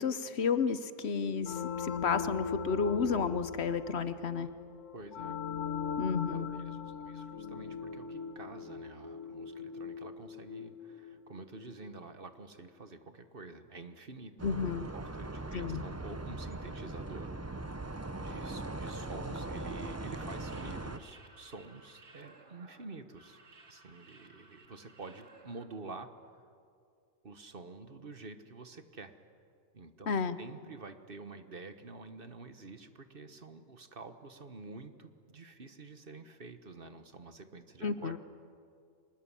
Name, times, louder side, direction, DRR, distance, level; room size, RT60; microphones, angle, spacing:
voice 1, 0.0-4.5 6.0-6.5 14.4-14.9 15.5-15.8 30.1-30.4 37.8-38.2, left 5 dB, 60° left, 12 dB, 1.1 m, -32 dB
sound 1, 1.4-11.9, left 6 dB, 75° left, 1.6 m, -40 dB
voice 2, 4.9-5.4 6.3-14.3 14.9-17.3 18.2-23.4 23.7-26.1 27.2-29.1 29.7-38.2, right 3 dB, 45° right, 9 dB, 1.4 m, -48 dB
sound 2, 14.4-21.0, right 2 dB, 15° right, 0.7 m, -40 dB
sound 3, 20.1-25.7, right 3 dB, 65° right, 2.5 m, -58 dB
24.5 x 20.5 x 10.0 m, 2.3 s
omnidirectional pair, 1.3 m